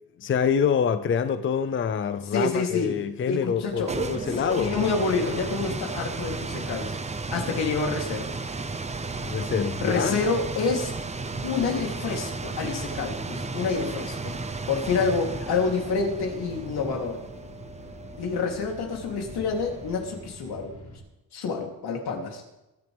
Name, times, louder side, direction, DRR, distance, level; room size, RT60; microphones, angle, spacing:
voice 1, 0.2-4.8 9.2-10.2, left 7 dB, 35° left, 0.6 m, -26 dB
voice 2, 2.3-2.9 3.3-3.9 4.3-7.0 7.3-8.3 9.8-10.9 11.4-14.3 14.7-17.2 18.2-20.7 21.3-22.4, left 4 dB, 80° left, 3.4 m, -28 dB
sound 1, 3.6-20.3, right 3 dB, 20° right, 0.8 m, -34 dB
sound 2, 11.2-21.0, left 1 dB, 50° left, 4.6 m, -47 dB
23.5 x 11.0 x 3.6 m
cardioid pair, 150°, 38 cm